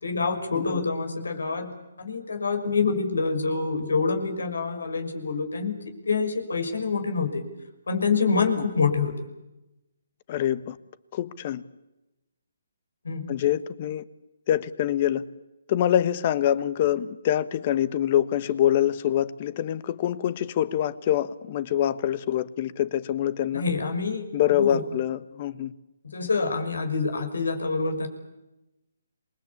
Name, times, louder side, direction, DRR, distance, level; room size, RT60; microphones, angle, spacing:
voice 1, 0.0-5.8 6.1-7.4 7.9-9.1 13.0-13.3 23.5-24.8 26.0-28.1, left 4 dB, 85° left, 6 dB, 5.9 m, -26 dB
voice 2, 0.5-0.8 10.3-10.8 11.1-11.6 13.3-14.0 14.5-15.2 15.7-23.6 24.3-25.7, left 11 dB, 35° left, 16 dB, 1.2 m, -25 dB
27.5 x 21.5 x 8.5 m, 0.96 s
hypercardioid pair, 160°, 0 cm